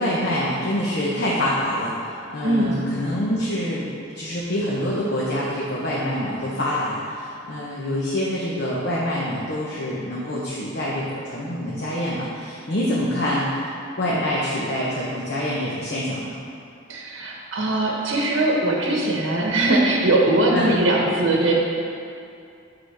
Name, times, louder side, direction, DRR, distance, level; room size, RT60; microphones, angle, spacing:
voice 1, 0.0-3.9 4.1-13.7 14.0-16.3 20.5-20.8, left 1 dB, 55° left, -6 dB, 0.8 m, -26 dB
voice 2, 2.4-2.8 16.9-21.5, right 2 dB, 75° right, -2 dB, 1.1 m, -20 dB
7.8 x 5.8 x 3.3 m, 2.5 s
head